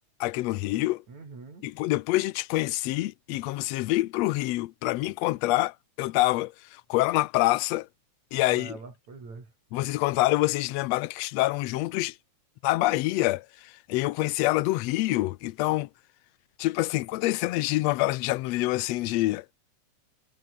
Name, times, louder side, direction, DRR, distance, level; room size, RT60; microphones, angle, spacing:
voice 1, 0.2-1.0 1.6-7.9 8.3-8.7 9.7-12.2 12.6-15.9 16.6-19.6, left 18 dB, 75° left, 1.7 m, -26 dB
voice 2, 1.1-1.7 8.3-9.5, right 4 dB, 70° right, 7.5 m, -44 dB
omnidirectional pair, 3.3 m